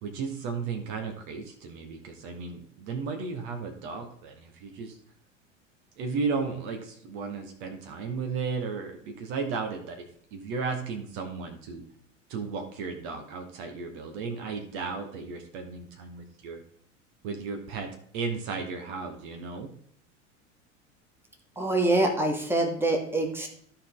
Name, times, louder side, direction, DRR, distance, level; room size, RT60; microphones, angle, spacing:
voice 1, 0.0-5.0 6.0-10.0 10.3-11.8 12.3-16.6 17.2-19.7, right 5 dB, 50° right, 5 dB, 1.3 m, -34 dB
voice 2, 21.6-23.5, right 2 dB, 5° right, 2 dB, 1.8 m, -25 dB
13.0 x 4.5 x 3.8 m, 0.64 s
figure-of-eight pair, 80°, 37 cm